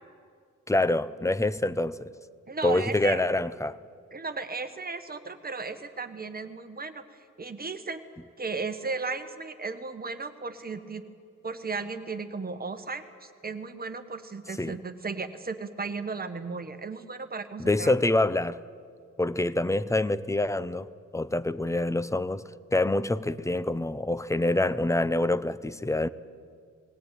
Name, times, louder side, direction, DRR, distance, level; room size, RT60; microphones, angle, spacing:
voice 1, 0.7-2.1 2.6-3.8 14.6-14.8 17.6-18.6 19.2-20.9 21.1-26.1, left 2 dB, 10° left, 0.5 m, -26 dB
voice 2, 2.5-3.2 4.1-8.0 8.4-11.0 11.4-17.9, right 4 dB, 30° right, 1.2 m, -35 dB
19.5 x 18.0 x 9.2 m
wide cardioid pair, 135°, 31 cm